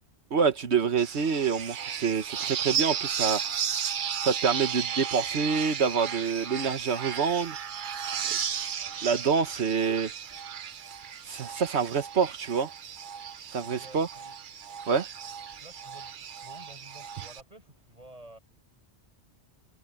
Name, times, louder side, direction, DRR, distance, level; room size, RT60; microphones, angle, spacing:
voice 1, 0.3-3.4 4.2-7.6 8.2-8.7 9.0-10.1 11.3-12.7 13.5-14.1 14.9-15.1, right 6 dB, 75° right, 1.4 m, -27 dB
sound 1, 1.0-17.4, right 8 dB, 50° right, 0.8 m, -34 dB
voice 2, 13.6-14.4 15.6-18.4, right 1 dB, 35° right, 8.2 m, -51 dB
omnidirectional pair, 1.1 m